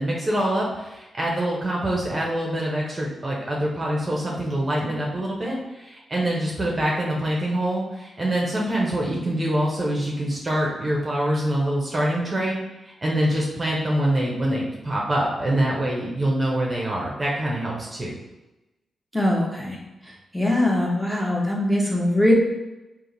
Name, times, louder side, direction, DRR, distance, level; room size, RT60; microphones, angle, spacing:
voice 1, 0.0-18.1, right 1 dB, 25° right, -3 dB, 0.9 m, -25 dB
voice 2, 19.1-19.8 20.0-22.3, left 1 dB, ahead, -2 dB, 1.0 m, -22 dB
3.6 x 2.6 x 3.9 m, 1.0 s
cardioid pair, 85°, 0 cm